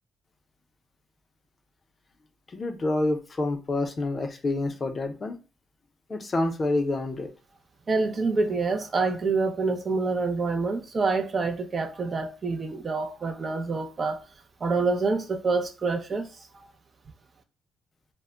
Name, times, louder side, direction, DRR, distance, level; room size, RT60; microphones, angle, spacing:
voice 1, 2.5-5.4 6.1-7.3, left 2 dB, 35° left, 0.5 m, -28 dB
voice 2, 7.9-14.2 14.6-16.3, right 3 dB, 40° right, 0.4 m, -27 dB
2.1 x 2.0 x 3.5 m
cardioid pair, 90°, 0 cm